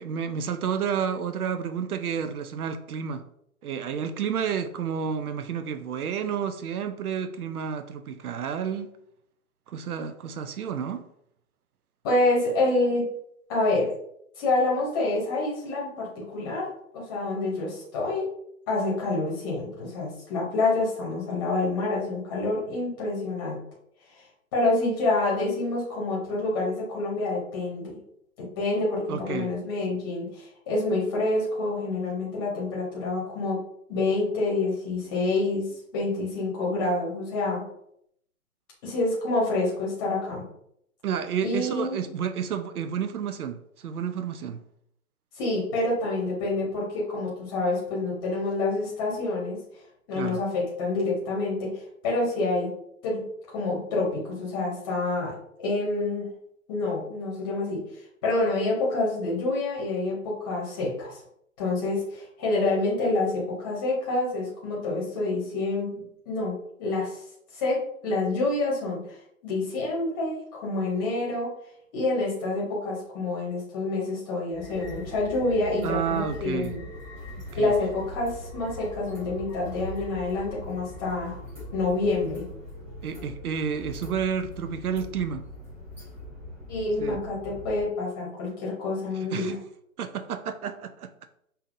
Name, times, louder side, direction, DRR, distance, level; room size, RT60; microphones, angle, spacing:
voice 1, 0.0-3.3 3.6-8.9 9.7-11.1 29.1-29.6 41.0-44.6 50.1-50.4 75.8-76.8 77.5-77.8 83.0-85.5 87.0-87.2 89.1-89.6 90.0-91.1, right 7 dB, 85° right, 0.6 m, -30 dB
voice 2, 12.0-13.1 13.5-13.9 14.4-16.7 16.9-18.2 18.7-23.6 24.5-28.0 28.4-33.6 33.9-35.6 35.9-37.6 38.8-40.4 41.4-42.0 45.4-49.6 50.1-52.7 53.0-56.3 56.7-57.8 58.2-61.2 61.6-67.2 67.5-69.2 69.4-71.5 71.9-76.8 77.6-81.4 81.7-82.4 86.7-89.6, left 2 dB, 15° left, 0.9 m, -27 dB
sound 1, 74.5-87.8, left 1 dB, 10° right, 0.6 m, -41 dB
5.6 x 2.7 x 2.5 m
hypercardioid pair, 160°, 43 cm